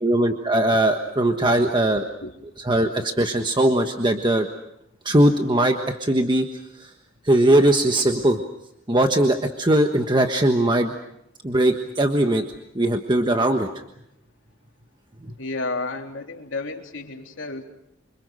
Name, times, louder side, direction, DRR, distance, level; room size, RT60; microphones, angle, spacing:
voice 1, 0.0-2.0 2.6-4.5 5.0-6.9 7.2-8.4 8.9-10.9 11.4-12.4 12.7-13.7 15.2-15.3, right 1 dB, 25° right, 5 dB, 1.4 m, -20 dB
voice 2, 15.4-17.6, left 3 dB, 70° left, 2 dB, 3.6 m, -32 dB
28.0 x 26.0 x 6.4 m, 0.80 s
head